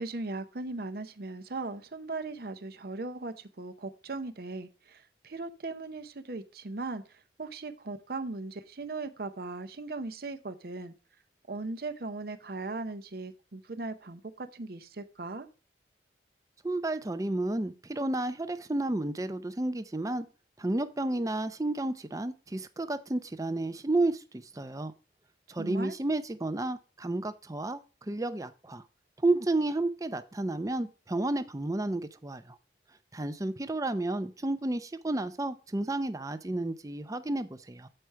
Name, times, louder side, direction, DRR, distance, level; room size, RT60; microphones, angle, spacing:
voice 1, 0.0-7.0 7.4-10.9 11.5-15.5 25.6-26.0, right 3 dB, 60° right, 10 dB, 0.7 m, -38 dB
voice 2, 16.6-20.3 20.6-24.9 25.5-27.8 28.1-28.8 29.2-32.4 33.1-37.9, right 2 dB, 20° right, 11 dB, 0.5 m, -31 dB
7.7 x 4.7 x 5.6 m, 0.34 s
head